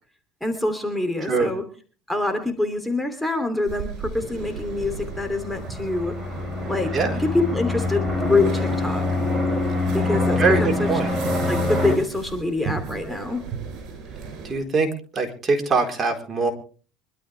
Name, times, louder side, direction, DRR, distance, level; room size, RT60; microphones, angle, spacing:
voice 1, 0.4-1.6 2.1-6.1 6.7-9.0 9.9-10.9 11.4-13.4, left 2 dB, 5° left, 6 dB, 2.9 m, -25 dB
sound 1, 3.7-14.6, right 5 dB, 55° right, 7.5 m, -36 dB
sound 2, 4.6-12.0, left 2 dB, 10° right, 6.7 m, -25 dB
voice 2, 10.4-11.1 14.4-16.5, right 4 dB, 30° right, 3 dB, 4.0 m, -22 dB
25.0 x 12.5 x 3.4 m, 0.39 s
supercardioid pair, 105°, 0 cm